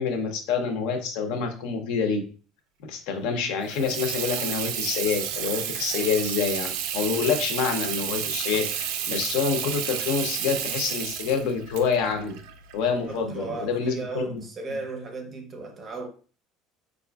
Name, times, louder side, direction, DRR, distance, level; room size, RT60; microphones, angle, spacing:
voice 1, 0.0-2.2 2.9-12.4 12.7-14.4, left 6 dB, 65° left, 0.7 m, -27 dB
Water tap faucet / Sink (filling or washing), 3.6-13.2, right 9 dB, 70° right, 0.4 m, -31 dB
voice 2, 12.8-16.1, right 3 dB, 25° right, 0.5 m, -35 dB
4.6 x 2.5 x 2.3 m
cardioid pair, 180°, 0 cm